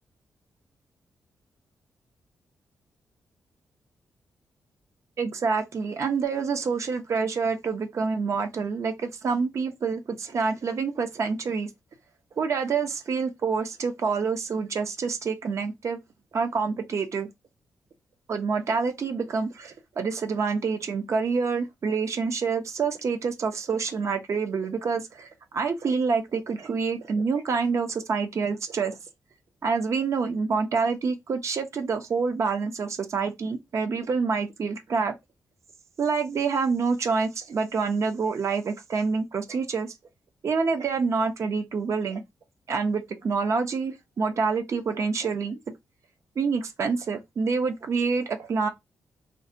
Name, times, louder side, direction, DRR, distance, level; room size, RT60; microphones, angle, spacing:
voice 1, 5.2-11.7 12.4-16.0 16.3-17.3 18.3-25.3 25.5-29.0 29.6-35.1 36.0-39.9 40.4-42.2 42.7-45.6 46.4-48.7, right 5 dB, 55° right, 0.5 m, -27 dB
2.6 x 2.1 x 2.5 m
cardioid pair, 95°, 6 cm